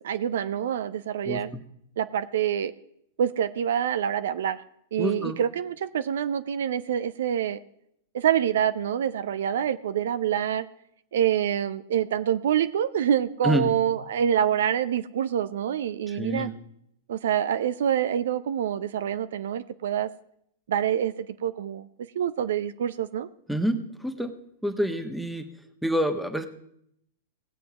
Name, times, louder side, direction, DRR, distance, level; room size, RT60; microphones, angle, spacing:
voice 1, 0.0-1.5 2.0-2.7 3.2-4.6 4.9-7.6 8.1-10.7 11.1-16.5 17.1-20.1 20.7-21.9 22.1-23.3, right 9 dB, 65° right, 13 dB, 0.5 m, -26 dB
voice 2, 1.2-1.6 5.0-5.4 13.4-13.7 16.1-16.5 23.5-24.3 24.6-25.5 25.8-26.5, equal, ahead, 7 dB, 1.3 m, -27 dB
18.5 x 7.6 x 4.8 m, 0.73 s
hypercardioid pair, 100°, 0 cm